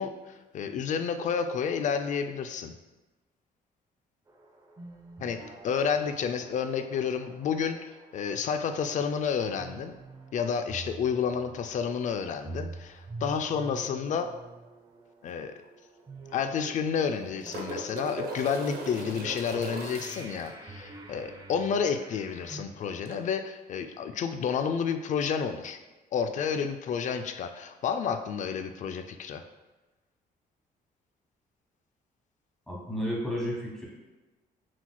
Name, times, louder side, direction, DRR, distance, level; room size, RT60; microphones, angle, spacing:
voice 1, 0.0-2.8 5.2-5.4 5.6-9.9 10.3-14.3 15.2-15.5 16.3-25.8 26.1-29.4, left 6 dB, 50° left, 8 dB, 0.4 m, -30 dB
sound 1, 4.3-22.6, right 3 dB, 20° right, 0.5 m, -47 dB
sound 2, 15.3-15.4 15.6-15.7 16.8-20.5 23.1-23.2, right 1 dB, 70° right, 0.7 m, -38 dB
voice 2, 32.7-33.8, equal, ahead, -4 dB, 1.3 m, -32 dB
5.8 x 2.9 x 2.2 m, 1.1 s
cardioid pair, 110°, 16 cm